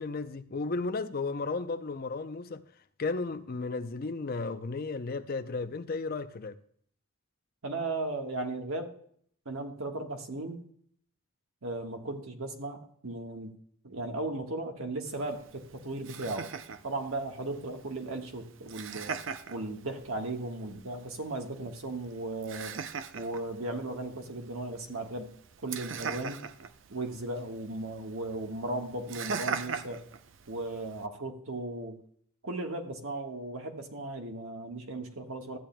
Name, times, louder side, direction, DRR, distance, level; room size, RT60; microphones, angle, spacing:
voice 1, 0.0-2.7 3.0-6.6, left 3 dB, 45° left, 0.5 m, -34 dB
voice 2, 7.6-9.0 9.4-10.6 11.6-13.6 13.8-16.5 16.8-19.2 19.5-22.7 23.1-25.3 25.6-26.5 26.9-30.0 30.5-32.0 32.4-35.6, right 2 dB, 85° right, 1.4 m, -36 dB
Laughter, 15.1-31.1, right 6 dB, 60° right, 0.5 m, -42 dB
14.0 x 8.9 x 2.2 m
head